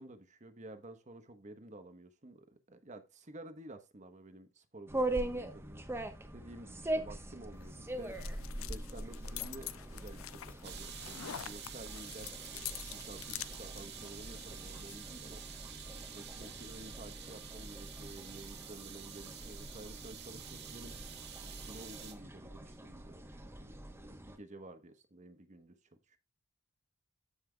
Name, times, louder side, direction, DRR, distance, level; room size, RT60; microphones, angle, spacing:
voice 1, 0.0-5.8 6.3-8.2 8.6-15.4 16.1-20.9 21.4-25.8 26.1-26.2, right 1 dB, 35° right, 1.1 m, -52 dB
sound 1, 4.9-24.4, right 1 dB, 10° right, 1.0 m, -42 dB
sound 2, 7.5-15.0, left 12 dB, 85° left, 0.5 m, -47 dB
sound 3, 10.6-22.1, right 9 dB, 55° right, 1.8 m, -49 dB
14.5 x 5.7 x 2.3 m
head